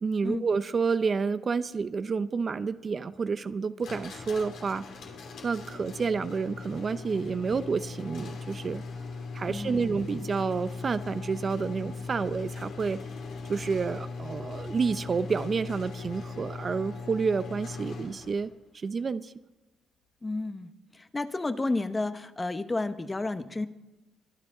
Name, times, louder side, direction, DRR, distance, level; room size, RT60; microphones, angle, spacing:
voice 1, 0.0-4.8 5.4-8.8 9.3-13.0 13.5-19.3, right 5 dB, 40° right, 12 dB, 0.6 m, -29 dB
sound 1, 3.8-18.5, left 4 dB, 75° left, 2.8 m, -39 dB
voice 2, 9.5-10.0 20.2-23.7, left 2 dB, 20° left, 10 dB, 0.9 m, -32 dB
23.5 x 9.7 x 3.9 m, 1.1 s
cardioid pair, 90°, 0 cm